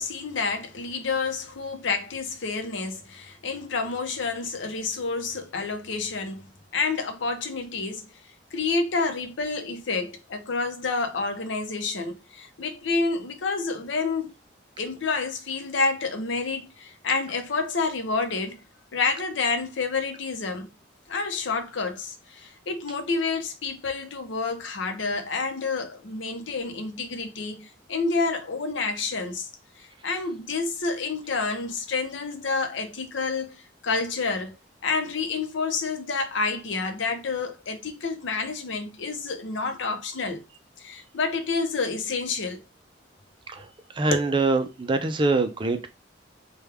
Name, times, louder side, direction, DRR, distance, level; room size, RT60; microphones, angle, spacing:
voice 1, 0.0-6.5 6.7-8.1 8.5-14.3 14.8-18.6 18.9-20.7 21.1-29.5 29.8-33.6 33.8-34.6 34.8-40.4 40.8-42.6 44.1-44.2, left 4 dB, 75° left, 0.7 m, -29 dB
voice 2, 43.9-45.9, right 3 dB, 25° right, 0.4 m, -24 dB
3.4 x 2.2 x 3.3 m
head